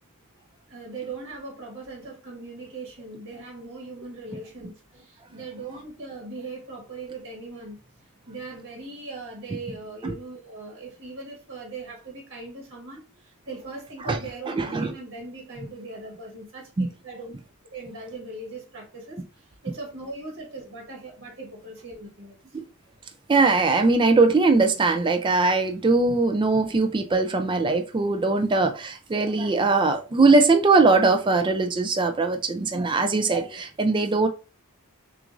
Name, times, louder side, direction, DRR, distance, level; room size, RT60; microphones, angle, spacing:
voice 1, 0.7-7.8 8.2-17.4 17.7-22.4, right 3 dB, 65° right, 1.3 m, -39 dB
voice 2, 14.5-14.9 16.8-16.9 22.5-22.7 23.3-34.3, right 3 dB, 20° right, 0.4 m, -21 dB
5.9 x 2.5 x 2.5 m
head